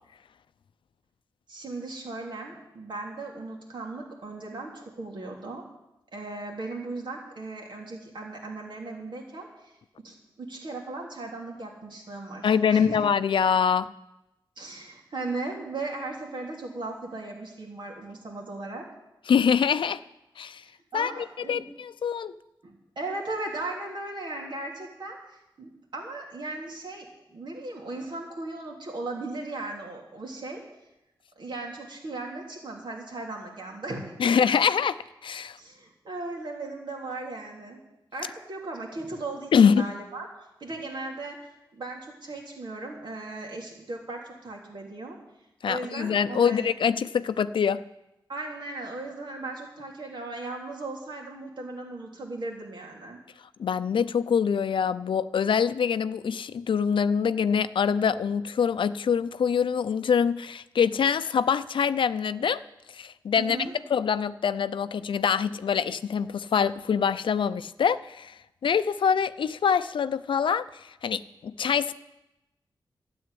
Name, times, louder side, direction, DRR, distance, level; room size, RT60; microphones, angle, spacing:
voice 1, 1.5-5.6 6.1-9.7 10.0-13.0 14.6-18.8 20.9-21.7 22.6-27.1 27.3-30.6 31.4-34.3 35.6-37.8 38.1-40.3 40.6-41.4 41.7-45.2 45.7-46.7 48.3-53.2 63.4-63.7, right 2 dB, 65° right, -1 dB, 3.2 m, -37 dB
voice 2, 12.4-13.9 19.3-20.0 20.4-20.6 20.9-22.4 34.2-35.6 39.5-39.8 45.6-47.8 53.6-62.6 62.9-63.6 63.9-68.3 68.6-70.6 71.0-71.9, left 7 dB, 80° left, 14 dB, 0.5 m, -24 dB
13.0 x 7.9 x 9.8 m, 0.93 s
wide cardioid pair, 100°, 8 cm